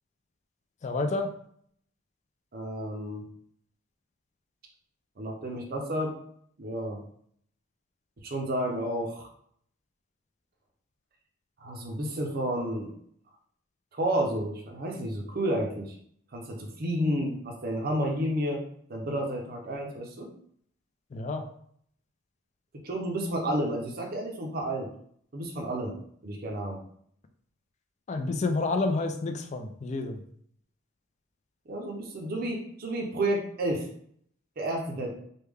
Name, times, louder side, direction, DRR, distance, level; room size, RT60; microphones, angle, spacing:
voice 1, 0.8-1.3 21.1-21.4 28.1-30.2, left 3 dB, 35° left, 6 dB, 0.3 m, -29 dB
voice 2, 2.5-3.2 5.2-6.1 6.6-7.0 8.2-9.3 11.6-12.9 13.9-16.0 16.3-18.6 18.9-20.3 22.8-24.9 25.3-25.9 26.2-26.8 31.7-33.9 34.6-35.1, right 1 dB, 45° right, 1 dB, 0.5 m, -31 dB
3.4 x 2.2 x 3.3 m, 0.64 s
head